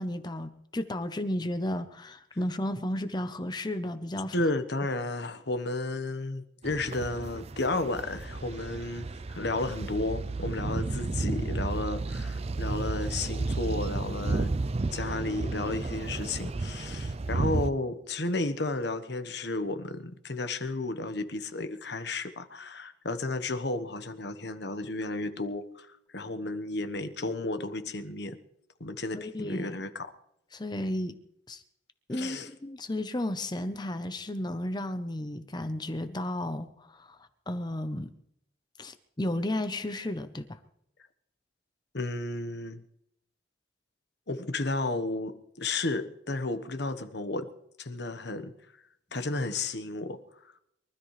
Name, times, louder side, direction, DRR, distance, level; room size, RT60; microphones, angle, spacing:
voice 1, 0.0-4.4 29.1-29.8 30.5-31.2 31.5-31.6 32.1-37.2 37.5-38.1 38.8-40.6, left 1 dB, 25° left, 0.8 m, -33 dB
voice 2, 4.3-14.6 14.9-28.4 28.8-30.1 32.1-32.5 41.9-42.8 44.3-47.5 47.8-48.5 49.1-50.2, left 2 dB, 65° left, 1.2 m, -33 dB
sound 1, 6.6-17.7, right 3 dB, 35° right, 0.5 m, -32 dB
24.0 x 13.0 x 3.3 m
head